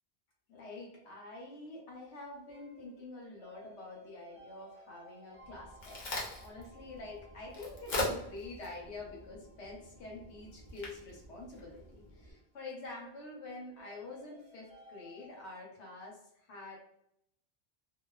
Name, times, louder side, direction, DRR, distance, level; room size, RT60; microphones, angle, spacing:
voice 1, 0.5-6.0 6.4-16.8, left 2 dB, 85° left, -2 dB, 1.1 m, -47 dB
sound 1, 1.9-15.5, right 1 dB, 10° right, 0.4 m, -60 dB
Crack, 5.4-12.3, left 2 dB, 50° left, 0.7 m, -42 dB
2.8 x 2.0 x 2.3 m, 0.74 s
omnidirectional pair, 1.1 m